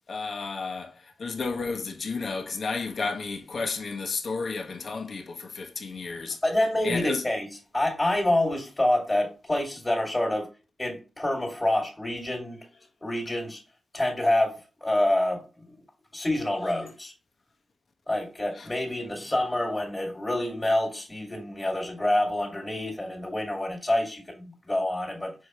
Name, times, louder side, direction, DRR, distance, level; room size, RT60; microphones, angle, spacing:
voice 1, 0.1-0.9 1.2-6.4 6.8-7.2, left 4 dB, 50° left, 1.5 m, -32 dB
voice 2, 6.4-10.5 10.8-12.7 13.0-13.6 13.9-15.8 16.1-17.1 18.1-25.3, left 1 dB, 15° left, 2.3 m, -27 dB
6.2 x 5.0 x 3.0 m
wide cardioid pair, 125°, 0 cm